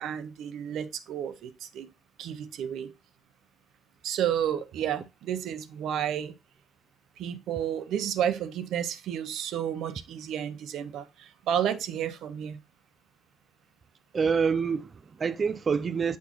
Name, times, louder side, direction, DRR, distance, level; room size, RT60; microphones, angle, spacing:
voice 1, 0.0-1.9 2.2-2.9 4.0-6.3 7.2-12.6, right 9 dB, 80° right, 0.6 m, -31 dB
voice 2, 14.1-16.2, right 6 dB, 40° right, 0.4 m, -27 dB
8.1 x 4.2 x 3.0 m
cardioid pair, 90°, 0 cm